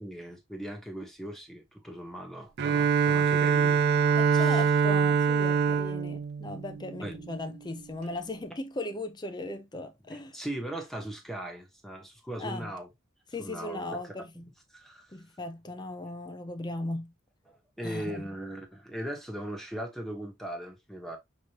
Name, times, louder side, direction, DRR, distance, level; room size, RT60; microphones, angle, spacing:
voice 1, 0.0-4.6 7.0-7.3 10.1-12.9 13.4-14.0 14.3-15.1 17.5-21.2, right 1 dB, ahead, 1.1 m, -39 dB
Bowed string instrument, 2.6-7.4, right 6 dB, 55° right, 0.5 m, -24 dB
voice 2, 4.1-10.4 12.4-12.7 13.3-14.3 15.1-17.1 17.8-18.3, left 2 dB, 20° left, 0.6 m, -37 dB
5.9 x 3.1 x 2.9 m
head